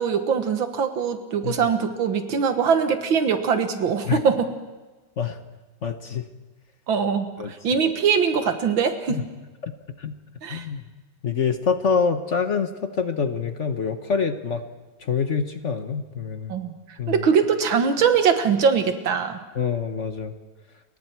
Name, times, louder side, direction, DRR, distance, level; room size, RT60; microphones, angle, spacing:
voice 1, 0.0-4.5 6.9-9.2 10.4-10.7 16.5-16.8 17.1-19.4, right 6 dB, 90° right, 8 dB, 2.3 m, -22 dB
voice 2, 5.8-6.3 7.4-7.5 9.1-9.2 9.6-10.2 10.5-10.8 11.2-14.6 15.0-16.5 17.0-17.2 19.5-20.4, left 6 dB, 45° left, 8 dB, 1.2 m, -26 dB
29.5 x 23.5 x 4.6 m, 1.2 s
omnidirectional pair, 2.1 m